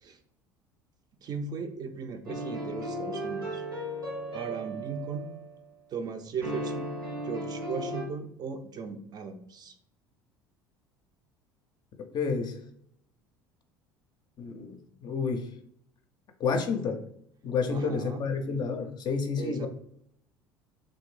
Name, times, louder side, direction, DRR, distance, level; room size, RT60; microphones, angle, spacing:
voice 1, 1.2-3.6 4.3-5.3 5.9-6.9 7.2-9.7 17.7-18.2 19.4-19.7, right 5 dB, 35° right, 7 dB, 0.4 m, -37 dB
sound 1, 2.3-5.6 6.4-8.0, equal, 90° right, 1.1 m, -35 dB
voice 2, 12.1-12.6 14.4-15.5 16.4-17.0 17.4-19.7, left 5 dB, 40° left, 6 dB, 0.5 m, -30 dB
3.2 x 2.6 x 3.2 m, 0.71 s
figure-of-eight pair, 65°, 11 cm